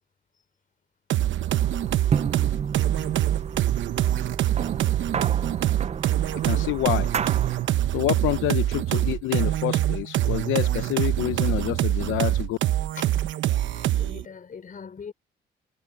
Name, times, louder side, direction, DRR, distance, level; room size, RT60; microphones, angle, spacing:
sound 1, 1.1-14.2, right 13 dB, 70° right, 0.9 m, -24 dB
sound 2, 1.3-7.8, right 7 dB, 35° right, 0.5 m, -31 dB
voice 1, 6.4-7.1 7.9-12.6, left 15 dB, 90° left, 0.7 m, -27 dB
voice 2, 12.9-13.2 13.7-15.1, left 6 dB, 45° left, 5.3 m, -41 dB
cardioid pair, 90°, 20 cm